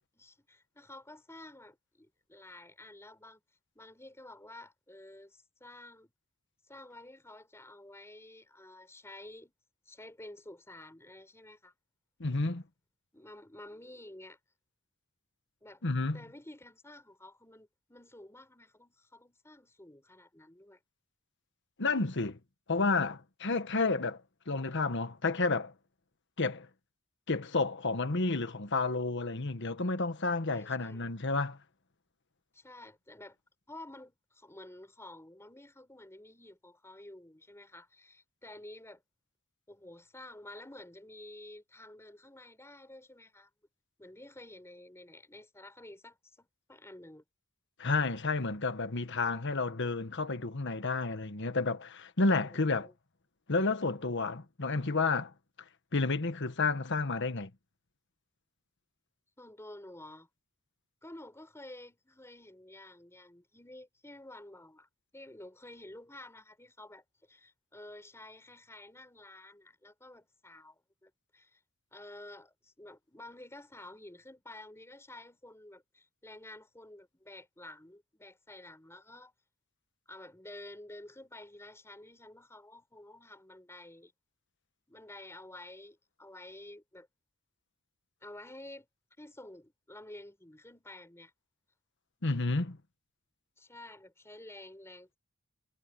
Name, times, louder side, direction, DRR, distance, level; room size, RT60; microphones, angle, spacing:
voice 1, 0.1-3.4 3.7-6.1 6.7-9.5 9.8-11.7 13.1-14.4 15.6-15.8 16.1-20.8 30.5-31.0 32.5-33.4 33.7-39.0 39.7-43.5 44.0-47.2 52.3-52.9 59.4-60.3 61.0-71.6 71.9-79.3 80.1-84.1 84.9-87.1 88.2-88.9 89.2-91.3 93.6-95.2, left 1 dB, 10° left, 4.9 m, -51 dB
voice 2, 12.2-12.6 15.8-16.2 21.8-22.4 22.7-24.2 24.5-25.7 26.4-26.7 27.3-31.6 47.8-52.9 53.5-55.3 55.9-57.5 92.2-92.8, left 3 dB, 55° left, 1.4 m, -30 dB
head